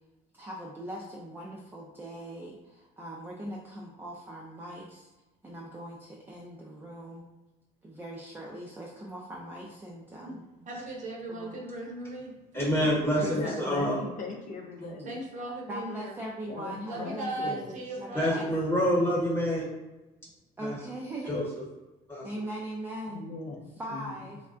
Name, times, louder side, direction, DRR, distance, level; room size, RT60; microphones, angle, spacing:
voice 1, 0.3-5.1 5.4-7.3 7.8-10.4 11.3-11.6 13.2-13.8 14.8-14.9 15.7-18.5 20.6-21.5 22.2-23.3 23.8-24.4, right 1 dB, 10° right, -3 dB, 0.4 m, -40 dB
voice 2, 10.2-13.9 15.0-16.2 16.8-18.5, right 2 dB, 50° right, -1 dB, 0.7 m, -38 dB
voice 3, 12.5-14.0 18.1-19.7 20.6-20.8 21.3-21.4 22.1-22.2, equal, 15° left, -4 dB, 1.1 m, -27 dB
voice 4, 13.4-15.1 16.5-17.7 23.1-24.2, left 4 dB, 50° left, 1 dB, 0.5 m, -39 dB
3.4 x 2.2 x 2.4 m, 1.1 s
cardioid pair, 110°, 17 cm